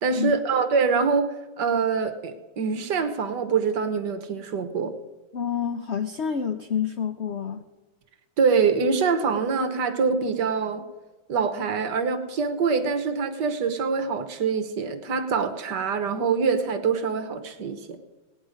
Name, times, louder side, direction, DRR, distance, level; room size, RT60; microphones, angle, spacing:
voice 1, 0.0-4.9 8.4-10.8 11.3-18.0, right 5 dB, 65° right, 8 dB, 1.7 m, -25 dB
voice 2, 5.3-7.6, left 7 dB, 70° left, 8 dB, 0.6 m, -28 dB
18.5 x 10.5 x 5.1 m, 1.2 s
omnidirectional pair, 2.0 m